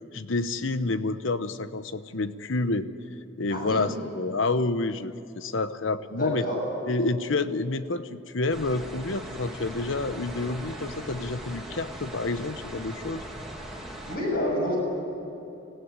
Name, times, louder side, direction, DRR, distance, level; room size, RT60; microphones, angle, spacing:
voice 1, 0.1-2.9 3.4-6.4 6.9-13.2, left 3 dB, 70° left, 12 dB, 0.9 m, -29 dB
voice 2, 3.5-3.8 6.1-6.6 14.1-14.8, equal, 50° left, -1 dB, 7.0 m, -28 dB
sound 1, 8.5-14.2, right 1 dB, ahead, 2.9 m, -40 dB
24.5 x 16.0 x 9.8 m, 2.9 s
head